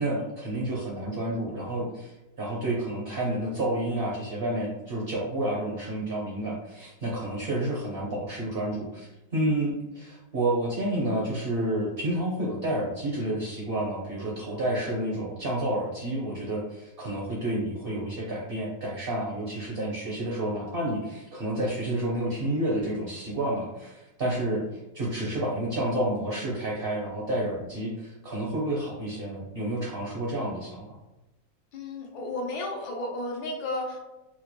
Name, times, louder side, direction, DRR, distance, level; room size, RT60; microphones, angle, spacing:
voice 1, 0.0-24.7 24.9-31.0, right 1 dB, 65° right, -4 dB, 0.5 m, -30 dB
voice 2, 31.7-34.0, left 2 dB, 85° left, 0 dB, 1.6 m, -33 dB
4.4 x 2.2 x 2.8 m, 1.0 s
omnidirectional pair, 2.0 m